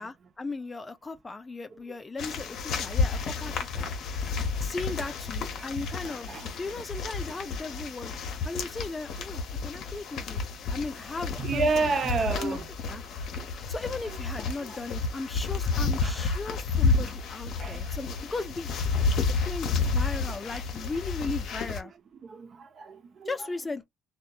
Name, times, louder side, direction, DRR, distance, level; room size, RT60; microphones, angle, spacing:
voice 1, 0.0-8.2 8.4-10.5 10.7-11.7 12.0-12.1 12.4-12.6 12.9-13.0 13.7-18.7 19.5-21.9 23.3-23.8, left 3 dB, 20° left, 0.3 m, -37 dB
sound 1, 2.2-21.8, left 4 dB, 60° left, 0.6 m, -31 dB
voice 2, 11.4-12.7 14.6-14.8 16.0-16.2 17.6-17.9 21.8-21.9 22.2-23.3, right 4 dB, 45° right, 0.5 m, -30 dB
2.6 x 2.1 x 2.3 m
cardioid pair, 105°, 0 cm